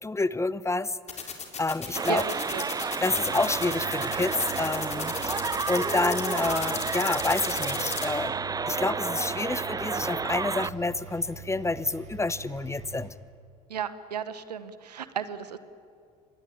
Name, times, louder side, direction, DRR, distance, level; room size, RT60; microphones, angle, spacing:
voice 1, 0.0-1.0 1.6-2.2 3.0-8.3 8.7-13.1, left 3 dB, 15° left, 18 dB, 0.9 m, -28 dB
sound 1, 1.1-8.1, left 5 dB, 35° left, 4.1 m, -34 dB
voice 2, 1.8-2.9 13.7-15.6, right 8 dB, 90° right, 13 dB, 1.1 m, -35 dB
sound 2, 2.0-10.7, right 5 dB, 20° right, 0.6 m, -31 dB
Engine, 3.1-13.1, right 5 dB, 35° right, 5.8 m, -44 dB
25.0 x 21.0 x 9.0 m, 2.3 s
hypercardioid pair, 65°, 20 cm